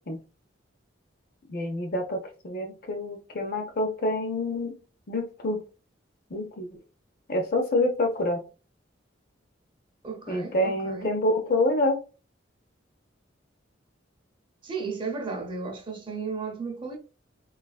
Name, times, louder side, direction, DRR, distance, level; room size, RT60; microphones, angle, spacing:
voice 1, 1.5-4.7 5.1-5.6 6.3-6.8 7.3-8.4 10.3-12.0, left 1 dB, 50° left, 0.6 m, -27 dB
voice 2, 10.0-11.1 14.6-17.0, right 4 dB, 25° right, 0.6 m, -34 dB
3.2 x 2.4 x 2.3 m
head